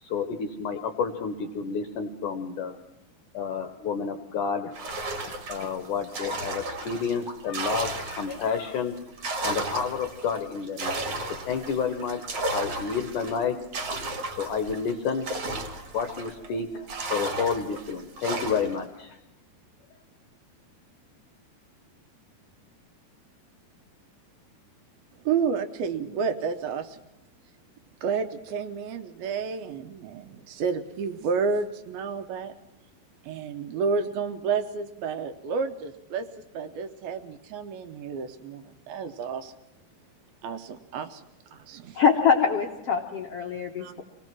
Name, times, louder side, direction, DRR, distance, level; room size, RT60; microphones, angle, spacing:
voice 1, 0.0-2.8 3.3-4.7 5.5-9.0 9.4-13.6 14.4-15.3 15.9-19.2, left 6 dB, 75° left, 7 dB, 2.0 m, -30 dB
sound 1, 4.7-8.6 9.0-16.5 16.9-18.8, right 2 dB, 50° right, 2.0 m, -34 dB
voice 2, 25.3-27.0 28.0-32.5 33.2-36.3 36.5-39.5 40.4-41.2 41.5-42.0 43.8-43.9, right 5 dB, 75° right, 8 dB, 2.5 m, -30 dB
voice 3, 41.9-44.0, left 6 dB, 90° left, 2 dB, 1.3 m, -24 dB
24.5 x 18.5 x 6.1 m, 0.94 s
omnidirectional pair, 4.9 m